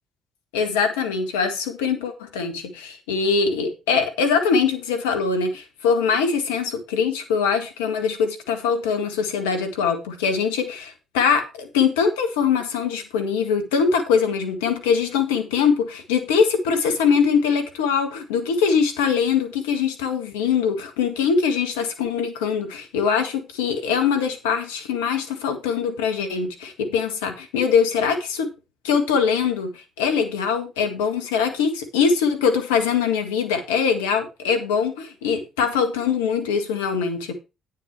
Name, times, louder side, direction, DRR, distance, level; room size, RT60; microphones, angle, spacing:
voice 1, 0.5-28.5 28.8-37.3, left 6 dB, 90° left, 1.8 m, -22 dB
9.6 x 7.6 x 4.7 m
hypercardioid pair, 50°, 0 cm